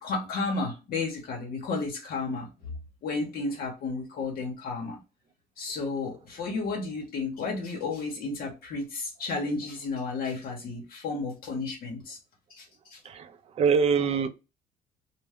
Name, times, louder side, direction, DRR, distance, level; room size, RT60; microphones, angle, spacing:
voice 1, 0.0-2.5 3.0-5.0 5.6-12.2 12.5-13.0, left 3 dB, 60° left, 0.8 m, -32 dB
voice 2, 13.0-14.3, right 6 dB, 40° right, 0.4 m, -24 dB
2.2 x 2.0 x 3.4 m
cardioid pair, 110°, 17 cm